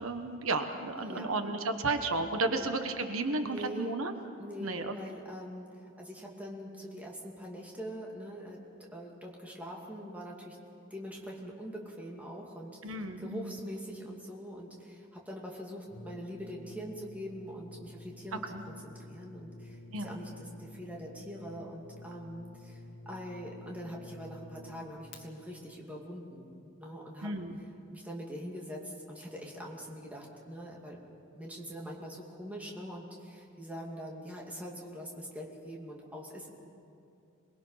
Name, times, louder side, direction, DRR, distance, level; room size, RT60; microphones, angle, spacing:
voice 1, 0.0-4.1 4.6-5.0 12.8-13.6 18.5-18.6 19.9-20.2 27.2-27.6, right 3 dB, 85° right, 7 dB, 1.3 m, -33 dB
voice 2, 1.0-1.6 2.4-2.7 3.4-3.9 4.4-5.7 6.0-8.6 8.9-10.6 10.9-26.5 26.8-27.3 27.6-31.0 31.3-36.5, equal, 5° right, -2 dB, 2.5 m, -43 dB
Brass instrument, 15.9-25.2, left 2 dB, 60° left, 1.8 m, -50 dB
27.0 x 21.0 x 5.7 m, 2.5 s
head